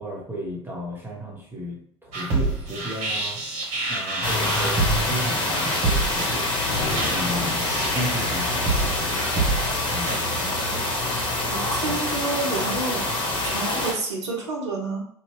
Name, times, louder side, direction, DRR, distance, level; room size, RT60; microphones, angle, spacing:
voice 1, 0.0-3.4 3.9-6.5 7.0-9.6 9.9-10.2 11.8-12.0, equal, 15° right, -3 dB, 1.2 m, -34 dB
sound 1, 2.1-10.2, right 2 dB, 50° right, 1.0 m, -28 dB
sound 2, 4.2-13.9, left 2 dB, 35° left, 1.1 m, -26 dB
Thunder, 6.4-8.6, left 4 dB, 60° left, 0.7 m, -35 dB
voice 2, 11.5-13.1 13.4-15.0, right 3 dB, 75° right, 0 dB, 0.7 m, -29 dB
2.8 x 2.2 x 3.2 m, 0.64 s
figure-of-eight pair, 65°, 14 cm